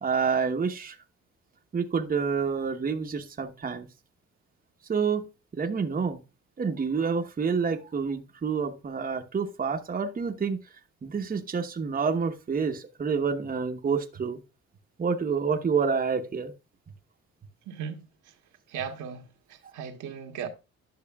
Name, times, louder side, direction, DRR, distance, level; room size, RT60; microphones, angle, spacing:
voice 1, 0.0-1.0 1.7-3.9 4.9-5.3 5.5-6.2 6.6-10.6 11.0-14.4 15.0-16.5 19.6-19.7, right 5 dB, 30° right, 0.9 m, -28 dB
voice 2, 17.7-18.0 18.7-20.5, right 7 dB, 80° right, 1.4 m, -37 dB
10.5 x 6.3 x 2.3 m
cardioid pair, 90°, 30 cm